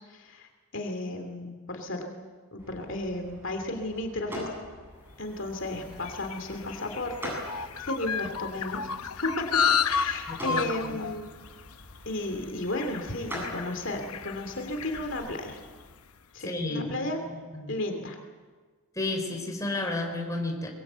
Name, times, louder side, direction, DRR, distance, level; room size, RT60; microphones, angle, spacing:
voice 1, 0.1-2.1 2.5-4.5 5.2-8.8 9.2-9.6 9.8-11.3 12.1-15.6 16.3-17.2 17.7-18.2, left 1 dB, 55° left, 5 dB, 2.6 m, -34 dB
sound 1, 2.6-15.1, left 1 dB, 10° right, 8.0 m, -44 dB
sound 2, 5.3-15.9, left 6 dB, 85° left, 0.9 m, -33 dB
voice 2, 10.3-11.0 16.4-16.9 17.2-17.7 19.0-20.7, left 2 dB, 15° left, 2 dB, 4.0 m, -32 dB
23.5 x 22.5 x 8.1 m, 1.5 s
head